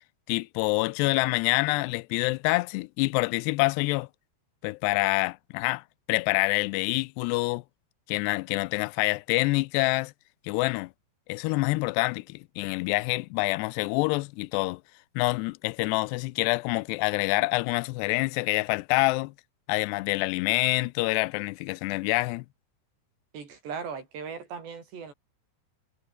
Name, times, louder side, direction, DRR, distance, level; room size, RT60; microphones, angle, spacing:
voice 1, 0.3-4.1 4.6-5.8 6.1-7.6 8.1-10.1 10.5-10.9 11.3-14.8 15.2-19.3 19.7-22.5, left 23 dB, 85° left, 2.7 m, -26 dB
voice 2, 23.3-25.1, right 6 dB, 90° right, 7.5 m, -38 dB
omnidirectional pair, 4.8 m